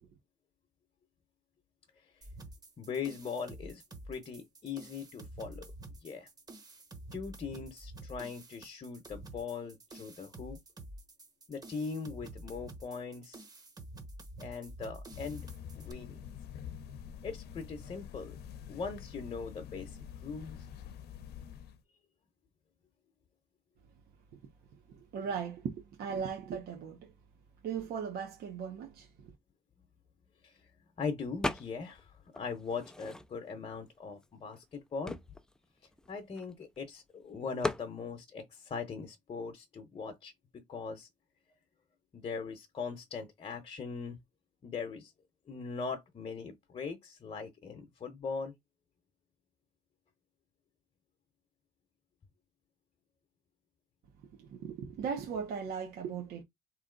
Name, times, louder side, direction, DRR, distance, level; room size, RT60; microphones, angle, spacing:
sound 1, 2.2-15.9, right 2 dB, 20° right, 1.0 m, -49 dB
voice 1, 2.8-5.7 6.0-6.3 7.1-10.6 11.5-13.4 14.4-15.5 15.8-16.2 17.2-18.4 18.7-20.7 30.4-30.7 31.0-35.2 36.1-41.1 42.1-44.2 44.6-45.1 45.5-48.5, left 5 dB, 35° left, 0.9 m, -40 dB
sound 2, 15.1-21.8, left 8 dB, 75° left, 0.7 m, -46 dB
voice 2, 24.9-27.1 27.6-29.3 54.4-56.4, right 6 dB, 70° right, 1.1 m, -38 dB
sound 3, 31.4-32.0 32.3-33.6 34.2-34.3 34.5-36.8 37.6-37.9, left 1 dB, 5° left, 0.4 m, -38 dB
3.9 x 3.2 x 3.8 m
cardioid pair, 110°, 17 cm